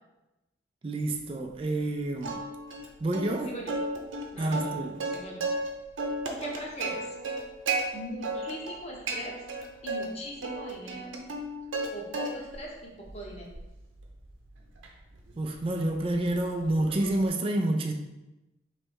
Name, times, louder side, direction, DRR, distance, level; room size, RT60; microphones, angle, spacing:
voice 1, 0.8-2.4 3.0-3.5 4.4-4.9 15.4-17.9, right 1 dB, 30° right, 4 dB, 0.3 m, -28 dB
Plucked string instrument, 2.2-2.9 3.1-3.3 3.7-5.7 6.0-7.8 8.2-8.8 9.1-10.1 10.4-11.9 12.1-12.6 13.1-17.3, right 3 dB, 80° right, 0.7 m, -34 dB
voice 2, 4.3-5.4 6.4-7.2 7.9-9.5 9.8-11.1 11.9-13.6, equal, 35° left, -1 dB, 0.8 m, -41 dB
3.2 x 3.1 x 4.6 m, 1.0 s
head